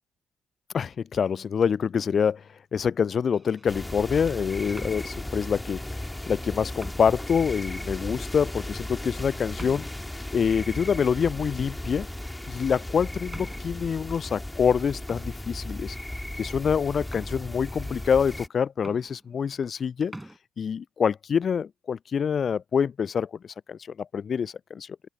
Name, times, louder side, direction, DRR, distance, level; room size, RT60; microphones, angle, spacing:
voice 1, 0.7-2.4 2.7-5.8 6.3-9.9 10.3-12.1 12.5-16.0 16.4-20.1 20.6-25.0, left 7 dB, 45° left, 0.3 m, -26 dB
sound 1, 1.9-2.4 3.2-3.8 4.6-5.6 6.3-6.4 6.8-7.3 7.8-7.9 8.5-8.7 9.6-10.2 11.3-11.8 12.2-12.5 13.3-13.9 14.7-14.8 15.1-16.3 17.0-17.9 18.5-18.6 18.8-19.8 20.0-20.4, right 1 dB, 10° right, 7.1 m, -47 dB
sound 2, 3.7-18.5, left 1 dB, 10° left, 2.9 m, -36 dB
open air
figure-of-eight pair, 40°, 0 cm